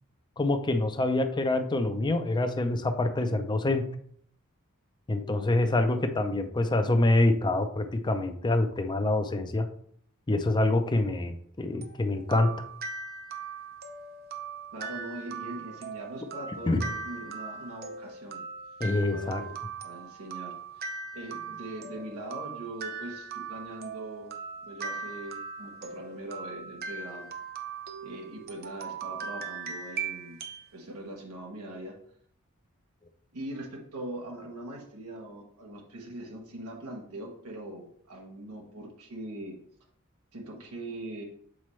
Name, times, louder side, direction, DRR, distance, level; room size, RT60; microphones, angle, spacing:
voice 1, 0.4-3.8 5.1-9.7 10.3-12.5 16.7-16.8 18.8-19.4, left 2 dB, 20° left, 7 dB, 0.5 m, -26 dB
sound 1, 11.8-30.7, right 5 dB, 45° right, 0.6 m, -39 dB
voice 2, 14.7-18.4 19.1-19.6 19.8-24.3 24.6-27.3 28.0-30.4 30.7-32.0 33.3-39.6 40.3-41.2, right 1 dB, 90° right, 0 dB, 1.3 m, -41 dB
7.6 x 4.2 x 3.1 m, 0.63 s
head